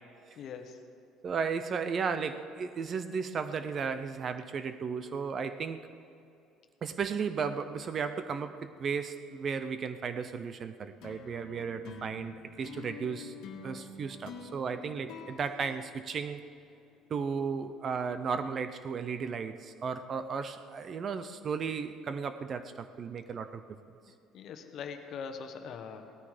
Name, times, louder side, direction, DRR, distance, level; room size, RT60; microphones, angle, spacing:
voice 1, 0.4-0.8 11.6-11.8 24.1-26.2, left 6 dB, 45° left, 6 dB, 1.2 m, -43 dB
voice 2, 1.2-5.9 6.8-13.3 13.6-16.4 17.1-23.6, right 6 dB, 30° right, 11 dB, 0.5 m, -35 dB
sound 1, 11.0-16.6, left 4 dB, 65° left, 1.6 m, -47 dB
17.5 x 13.0 x 5.0 m, 2.6 s
cardioid pair, 160°, 0 cm